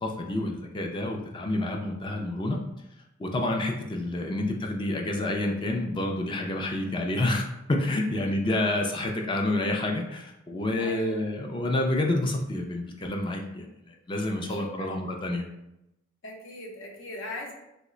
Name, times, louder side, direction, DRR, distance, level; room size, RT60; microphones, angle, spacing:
voice 1, 0.0-2.6 3.2-15.4, left 1 dB, 25° left, 2 dB, 0.3 m, -28 dB
voice 2, 8.0-8.6 10.8-11.3 14.4-15.1 16.2-17.5, left 1 dB, 70° left, 0 dB, 0.7 m, -41 dB
3.0 x 2.1 x 3.7 m, 0.87 s
head